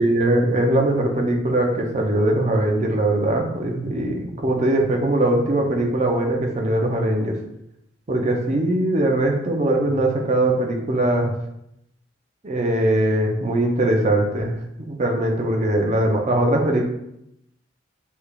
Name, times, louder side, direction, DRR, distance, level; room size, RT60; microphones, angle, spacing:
voice 1, 0.0-7.4 8.1-11.3 12.4-14.6 14.9-16.8, right 1 dB, 35° right, 1 dB, 0.5 m, -21 dB
3.6 x 3.2 x 2.3 m, 0.79 s
head